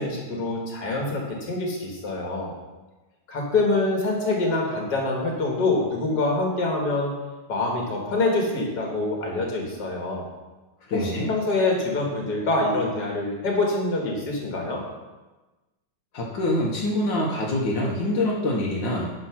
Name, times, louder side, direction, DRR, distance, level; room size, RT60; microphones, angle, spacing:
voice 1, 0.0-2.5 3.3-7.1 7.5-10.3 11.0-14.8, left 2 dB, 60° left, -1 dB, 2.2 m, -25 dB
voice 2, 10.9-11.3 16.1-19.1, left 1 dB, 85° left, -2 dB, 1.9 m, -25 dB
9.7 x 4.2 x 5.9 m, 1.1 s
omnidirectional pair, 2.0 m